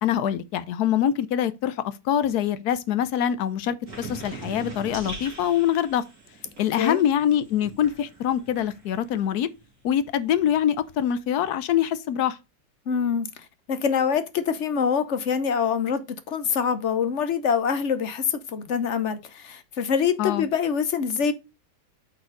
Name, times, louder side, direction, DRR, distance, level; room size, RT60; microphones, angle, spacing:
voice 1, 0.0-6.0 6.6-9.5 9.8-12.4 20.2-20.5, left 10 dB, 75° left, 1.2 m, -24 dB
sound 1, 3.9-9.2 9.5-11.2, right 2 dB, 55° right, 2.9 m, -42 dB
voice 2, 12.9-13.3 13.7-21.3, left 6 dB, 55° left, 1.1 m, -25 dB
8.5 x 4.4 x 3.9 m
omnidirectional pair, 1.7 m